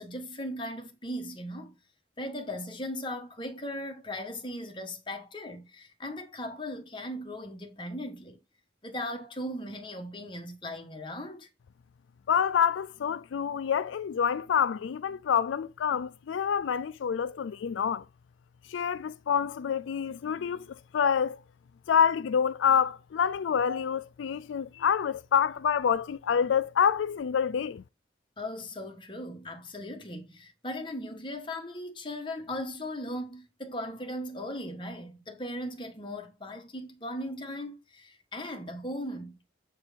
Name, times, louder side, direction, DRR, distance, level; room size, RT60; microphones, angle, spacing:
voice 1, 0.0-1.7 2.2-8.4 8.8-11.5 28.4-39.3, left 1 dB, 25° left, 1.6 m, -38 dB
voice 2, 12.3-18.0 18.7-20.6 20.9-21.4 21.9-27.8, left 7 dB, 85° left, 0.4 m, -27 dB
7.6 x 4.5 x 5.2 m
head